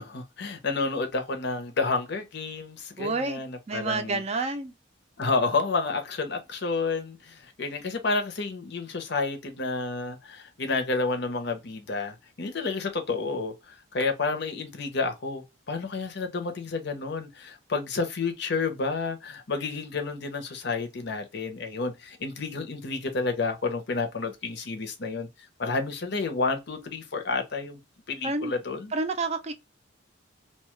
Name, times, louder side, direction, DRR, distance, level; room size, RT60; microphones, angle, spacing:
voice 1, 0.0-4.2 5.2-25.3 25.6-27.8 28.1-28.9, left 3 dB, 60° left, 0.7 m, -30 dB
voice 2, 3.0-3.4 3.7-4.7 28.2-28.6 28.9-29.5, right 3 dB, 35° right, 0.4 m, -29 dB
2.8 x 2.3 x 3.0 m
head